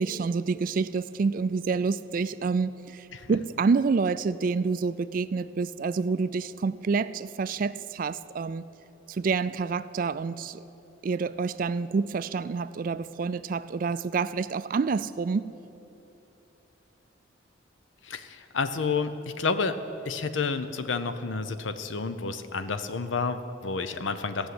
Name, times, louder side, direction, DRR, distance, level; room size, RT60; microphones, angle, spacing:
voice 1, 0.0-8.7 9.1-10.6 11.0-15.5, right 4 dB, 45° right, 15 dB, 0.3 m, -28 dB
voice 2, 18.0-19.8 20.0-24.5, left 4 dB, 75° left, 10 dB, 0.7 m, -30 dB
15.5 x 6.4 x 9.5 m, 2.9 s
head